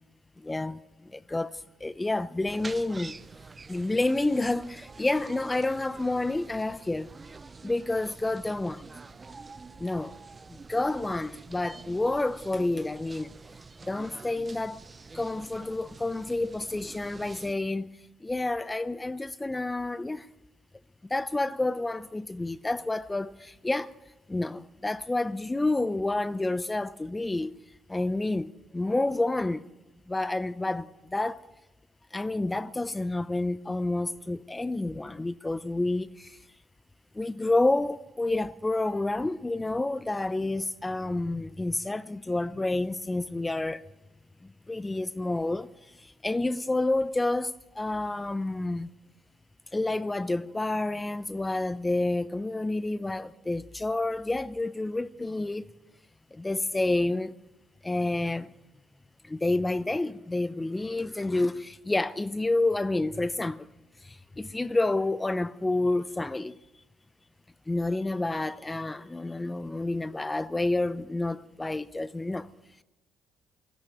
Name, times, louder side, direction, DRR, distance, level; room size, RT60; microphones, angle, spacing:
voice 1, 0.4-0.8 1.1-1.5 1.8-3.2 3.7-7.1 7.6-8.8 9.8-10.2 10.7-13.3 13.8-14.8 15.1-17.9 18.2-20.3 21.1-23.9 24.3-27.5 27.9-29.6 30.1-31.4 32.1-36.4 37.2-43.8 44.7-45.7 46.2-48.9 49.7-55.7 56.3-57.3 57.8-58.5 59.3-63.7 64.4-66.5 67.7-72.5, left 2 dB, 15° left, 0.7 m, -29 dB
sound 1, 2.4-17.5, right 4 dB, 30° right, 0.9 m, -47 dB
19.0 x 15.0 x 9.1 m
hypercardioid pair, 55°, 0 cm